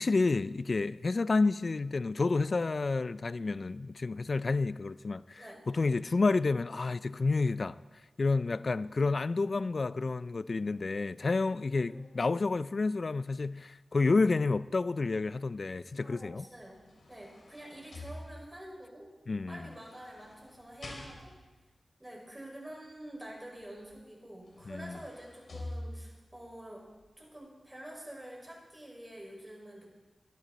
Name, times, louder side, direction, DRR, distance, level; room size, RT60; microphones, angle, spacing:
voice 1, 0.0-7.8 8.2-16.5 19.3-19.7 24.7-25.0, left 3 dB, 55° left, 0.4 m, -30 dB
voice 2, 16.0-19.1 19.5-21.3 22.0-26.9 27.2-29.9, right 1 dB, 15° right, 5.5 m, -47 dB
sound 1, 16.6-18.8 19.6-21.6 23.9-24.0 24.3-26.3 26.9-27.0, left 1 dB, 70° left, 2.7 m, -47 dB
18.5 x 12.0 x 4.2 m
cardioid pair, 55°, 0 cm